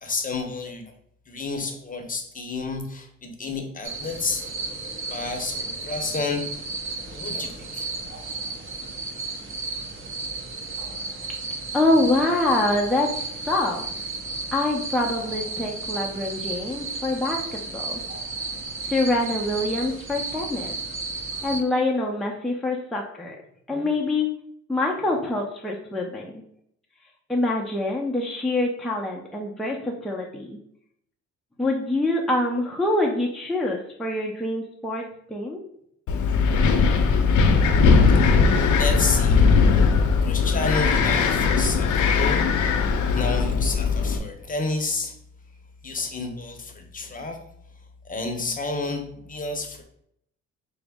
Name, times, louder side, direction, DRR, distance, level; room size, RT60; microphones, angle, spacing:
voice 1, 0.0-0.9 1.3-4.5 5.1-6.4 7.1-7.9 38.1-39.5 40.2-45.1 45.8-47.4 48.0-49.8, left 3 dB, 30° left, 4 dB, 0.7 m, -30 dB
sound 1, 3.8-21.6, right 3 dB, 45° right, 0.8 m, -33 dB
voice 2, 11.7-13.8 14.5-18.0 18.9-20.8 21.4-23.3 23.7-24.3 24.7-26.4 27.3-30.6 31.6-35.6, left 2 dB, ahead, -1 dB, 0.5 m, -25 dB
Wind, 36.1-44.2, left 5 dB, 75° left, 0.6 m, -19 dB
4.8 x 2.0 x 3.4 m, 0.72 s
cardioid pair, 90°, 30 cm